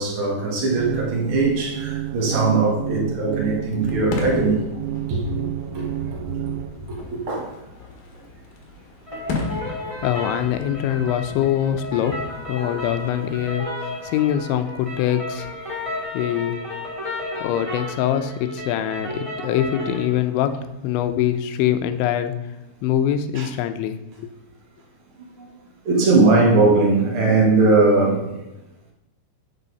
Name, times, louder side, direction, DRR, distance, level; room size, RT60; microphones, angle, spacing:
voice 1, 0.0-4.6 5.1-5.4 5.7-5.8 6.1-6.2 6.9-7.5 23.3-23.5 25.4-25.5 25.8-28.3, right 3 dB, 60° right, -2 dB, 1.3 m, -20 dB
sound 1, 0.7-6.7, right 14 dB, 85° right, 2.3 m, -30 dB
Fireworks, 3.7-13.6, left 3 dB, 60° left, 2.8 m, -35 dB
sound 2, 9.1-20.1, left 1 dB, 10° right, 1.7 m, -33 dB
voice 2, 10.0-12.2 12.5-13.7 14.0-15.5 16.1-16.5 17.4-20.6 20.8-22.3 22.8-24.3, left 10 dB, 85° left, 9 dB, 3.1 m, -23 dB
11.5 x 7.3 x 4.0 m, 0.97 s
omnidirectional pair, 5.3 m